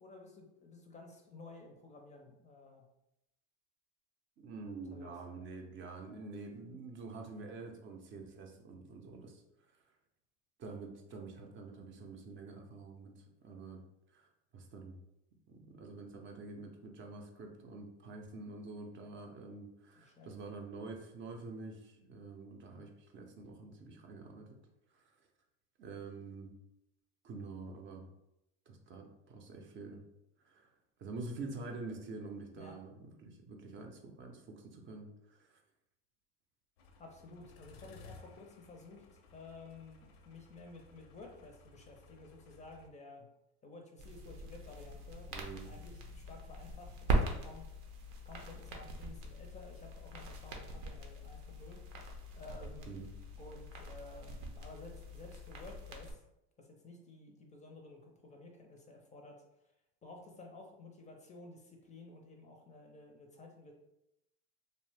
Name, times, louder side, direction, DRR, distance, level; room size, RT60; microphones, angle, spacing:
voice 1, 0.0-2.9 4.8-5.1 20.0-20.3 32.5-32.8 37.0-43.3 43.6-47.7 48.2-51.8 52.4-53.0 53.4-56.2 56.6-59.4 60.0-63.7, left 2 dB, 25° left, 2 dB, 0.4 m, -53 dB
voice 2, 4.4-9.4 10.6-13.8 14.1-14.2 14.5-15.0 15.5-24.5 25.8-26.5 27.2-28.1 28.7-30.0 30.5-30.7 31.0-32.9 33.2-35.6 45.3-45.7 52.9-53.1, right 3 dB, 40° right, 2 dB, 0.6 m, -47 dB
sound 1, 36.8-42.9, left 3 dB, 80° left, 0.5 m, -58 dB
sound 2, 44.0-56.1, right 1 dB, 75° right, 0.7 m, -41 dB
2.8 x 2.1 x 3.2 m, 0.86 s
supercardioid pair, 105°, 30 cm